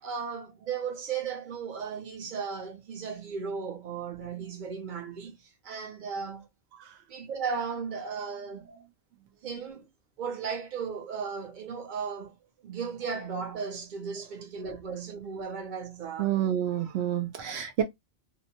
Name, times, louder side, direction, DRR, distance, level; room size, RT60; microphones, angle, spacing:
voice 1, 0.0-5.3 5.6-6.5 7.1-8.8 9.4-9.9 10.2-12.4 12.6-16.3, right 6 dB, 50° right, 0.8 m, -36 dB
voice 2, 6.7-7.0 16.2-17.8, right 10 dB, 80° right, 0.8 m, -29 dB
2.6 x 2.1 x 2.8 m
omnidirectional pair, 1.1 m